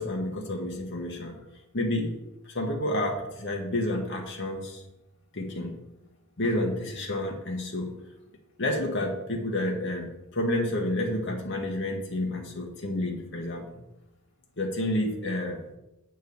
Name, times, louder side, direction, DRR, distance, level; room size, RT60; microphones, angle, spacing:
voice 1, 0.0-1.3 1.7-2.1 2.4-4.8 5.3-5.8 6.4-7.9 8.6-13.7 14.6-15.6, left 1 dB, 55° left, 1 dB, 1.1 m, -30 dB
8.0 x 4.5 x 6.9 m, 0.93 s
head